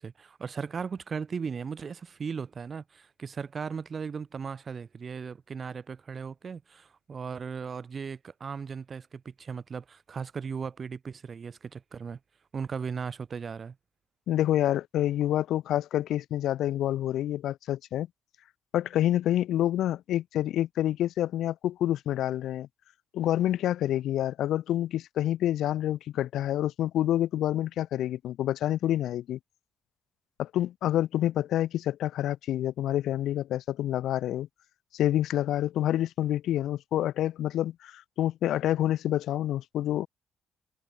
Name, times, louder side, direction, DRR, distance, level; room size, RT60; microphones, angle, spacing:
voice 1, 0.0-12.2 12.5-13.8, right 6 dB, 40° right, 1.8 m, -37 dB
voice 2, 14.3-18.1 18.7-22.7 23.1-29.4 30.4-34.5 34.9-40.1, left 12 dB, 80° left, 1.0 m, -28 dB
cardioid pair, 90°, 0 cm